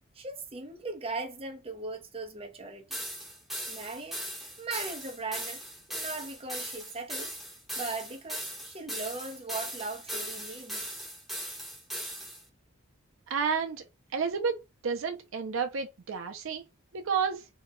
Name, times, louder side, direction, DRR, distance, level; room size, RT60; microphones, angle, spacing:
voice 1, 0.2-3.0 3.7-4.2 4.6-5.6 5.9-7.3 7.8-10.9, right 3 dB, 25° right, 0.7 m, -38 dB
sound 1, 2.9-12.4, equal, ahead, 0.9 m, -38 dB
voice 2, 13.3-16.6 16.9-17.5, right 6 dB, 65° right, 0.5 m, -31 dB
2.8 x 2.2 x 3.7 m
head